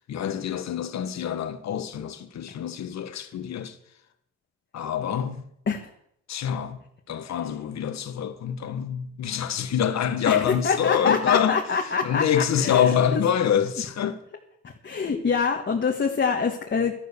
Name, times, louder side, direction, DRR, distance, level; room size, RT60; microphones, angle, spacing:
voice 1, 0.1-3.8 4.7-5.4 6.3-6.8 7.1-11.6 12.0-14.2, left 9 dB, 60° left, 1.6 m, -26 dB
voice 2, 10.3-12.2 12.6-13.2 14.6-16.9, left 5 dB, 40° left, 1.8 m, -25 dB
12.5 x 11.5 x 6.9 m
cardioid pair, 90°, 30 cm